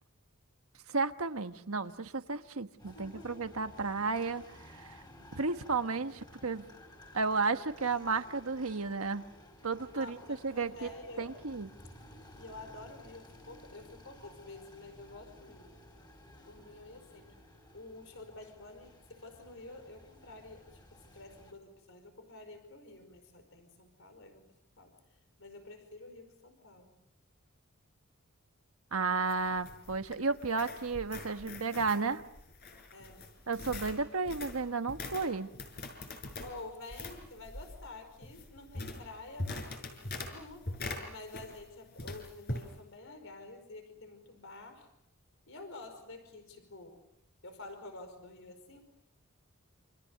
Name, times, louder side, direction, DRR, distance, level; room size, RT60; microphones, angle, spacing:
voice 1, 0.9-4.4 4.8-4.9 5.3-6.6 7.1-9.2 9.6-10.2 10.4-10.9 11.2-11.7 28.9-32.2 33.5-35.5, right 4 dB, 85° right, 8 dB, 1.4 m, -33 dB
sound 1, 2.8-21.5, left 1 dB, 20° left, 5.4 m, -55 dB
voice 2, 2.9-3.5 9.9-11.3 12.4-15.7 16.4-17.3 17.7-24.4 24.8-26.9 32.9-33.3 36.4-39.7 40.2-40.7 41.1-44.9 45.5-47.0 47.4-48.8, left 2 dB, 65° left, 8 dB, 5.1 m, -49 dB
sound 2, 29.1-41.7 42.0-42.7, left 2 dB, 50° left, 6.1 m, -43 dB
29.0 x 27.5 x 6.7 m, 0.80 s
head